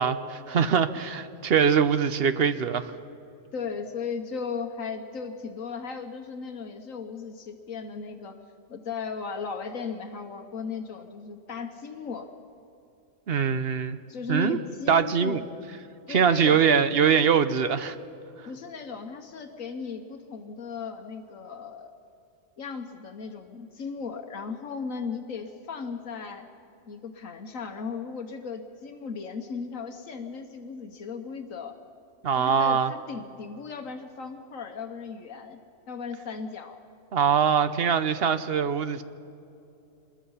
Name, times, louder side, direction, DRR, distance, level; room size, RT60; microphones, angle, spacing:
voice 1, 0.0-2.9 13.3-14.0 14.3-14.6 14.9-15.4 16.1-18.0 32.2-32.9 37.1-39.0, right 7 dB, 55° right, 11 dB, 0.9 m, -23 dB
voice 2, 3.5-8.3 8.7-12.3 14.1-15.4 16.1-16.6 18.5-21.9 22.6-26.5 26.9-31.8 32.3-35.6 35.9-36.8, left 5 dB, 80° left, 5 dB, 1.5 m, -36 dB
25.5 x 21.5 x 5.7 m, 2.8 s
omnidirectional pair, 1.4 m